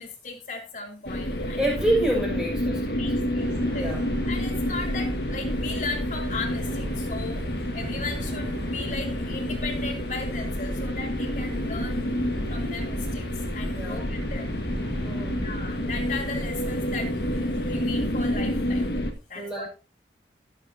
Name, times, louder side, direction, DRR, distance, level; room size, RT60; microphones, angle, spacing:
voice 1, 0.0-1.6 2.7-3.9 4.3-7.5 7.7-12.0 12.5-13.3 13.5-14.6 15.4-18.8 19.3-19.7, left 4 dB, 45° left, 3.0 m, -37 dB
sound 1, 1.1-19.1, left 1 dB, 60° left, 1.7 m, -29 dB
voice 2, 1.4-3.0 3.8-4.1 13.7-14.1 15.0-15.5 19.3-19.7, right 1 dB, 5° right, 6.2 m, -27 dB
sound 2, 3.4-18.3, equal, 85° right, 4.5 m, -38 dB
17.0 x 7.8 x 2.8 m
head